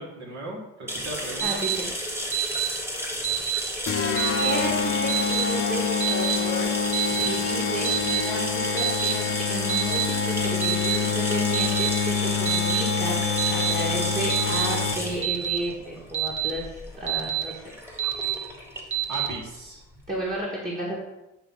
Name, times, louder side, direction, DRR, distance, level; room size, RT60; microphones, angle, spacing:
voice 1, 0.0-1.6 7.1-7.3 19.1-19.8, right 1 dB, 70° right, -3 dB, 2.3 m, -36 dB
sound 1, 0.9-20.3, equal, 10° right, 1.5 m, -33 dB
voice 2, 1.4-1.9 4.4-6.7 7.1-17.7 20.1-20.9, right 1 dB, 25° right, -5 dB, 1.8 m, -32 dB
Alarm, 1.4-1.8 2.3-2.7 3.2-3.6 4.2-4.5 5.1-5.4 6.0-6.4 6.9-7.3 7.8-8.2 8.8-9.1 9.7-10.0 10.6-11.0 11.5-11.9 12.5-12.8 13.4-13.7 14.3-14.7 15.2-15.6 16.1-16.5 17.1-17.4 18.0-18.3 18.9-19.3, right 13 dB, 40° right, 1.4 m, -26 dB
sound 2, 3.9-15.2, left 6 dB, 45° left, 0.8 m, -26 dB
8.4 x 3.1 x 5.5 m, 0.96 s
cardioid pair, 90°, 30 cm